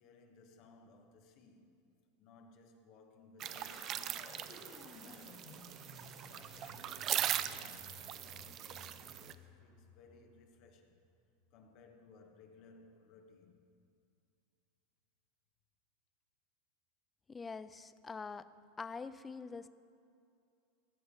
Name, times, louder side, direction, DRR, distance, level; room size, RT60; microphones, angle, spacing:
voice 1, 0.0-1.8 2.2-5.5 6.2-11.0 11.5-13.7, left 4 dB, 55° left, 1.4 m, -61 dB
sound 1, 3.4-9.3, right 11 dB, 45° right, 0.5 m, -40 dB
sound 2, 3.5-11.5, left 4 dB, 40° left, 1.9 m, -57 dB
voice 2, 17.3-18.5 18.8-19.7, left 4 dB, 20° left, 0.4 m, -44 dB
17.5 x 6.8 x 5.5 m
hypercardioid pair, 105°, 0 cm